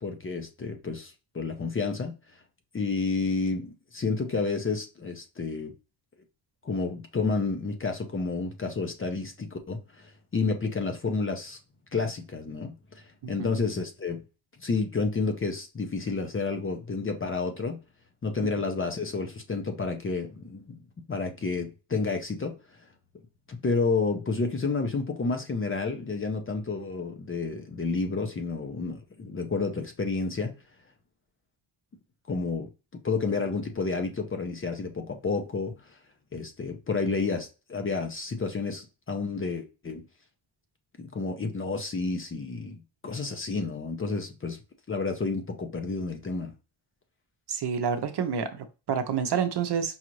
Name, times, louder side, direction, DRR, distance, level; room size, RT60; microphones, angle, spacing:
voice 1, 0.0-2.2 2.7-5.7 6.6-11.6 11.9-14.2 14.6-17.8 18.2-20.8 21.1-22.6 23.5-30.5 32.3-32.7 33.0-35.7 36.3-40.0 41.0-44.6 44.9-46.5, left 4 dB, 25° left, 0.6 m, -30 dB
voice 2, 47.5-50.0, right 7 dB, 55° right, 0.7 m, -28 dB
5.5 x 2.5 x 3.0 m
wide cardioid pair, 140°, 48 cm